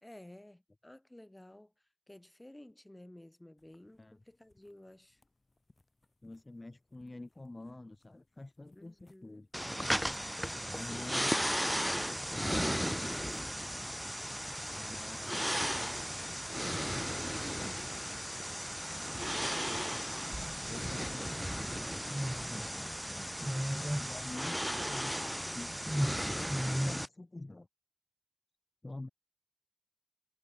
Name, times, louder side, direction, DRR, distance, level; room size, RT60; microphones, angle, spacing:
voice 1, 0.0-1.7 2.1-5.2 8.7-9.5 10.8-11.2 23.2-23.8, left 1 dB, 35° left, 3.3 m, -54 dB
sound 1, 3.6-23.5, left 2 dB, 85° left, 5.4 m, -70 dB
voice 2, 6.2-9.5 10.7-11.7 12.3-12.7 14.6-15.5 17.2-18.0 20.7-21.6 24.1-26.0 26.8-27.7 28.8-29.1, left 2 dB, 70° left, 0.9 m, -47 dB
sound 2, 9.5-27.1, equal, 5° right, 0.3 m, -35 dB
wide cardioid pair, 40°, 0 cm